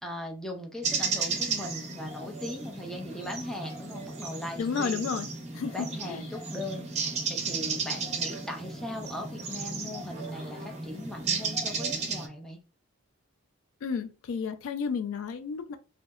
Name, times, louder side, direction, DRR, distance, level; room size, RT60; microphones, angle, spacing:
voice 1, 0.0-5.1 5.7-12.6, left 1 dB, 5° left, 0.5 m, -39 dB
sound 1, 0.8-12.3, right 4 dB, 35° right, 0.7 m, -34 dB
voice 2, 4.6-5.3 5.5-6.2 13.8-15.8, left 6 dB, 70° left, 0.3 m, -32 dB
2.7 x 2.1 x 2.3 m
head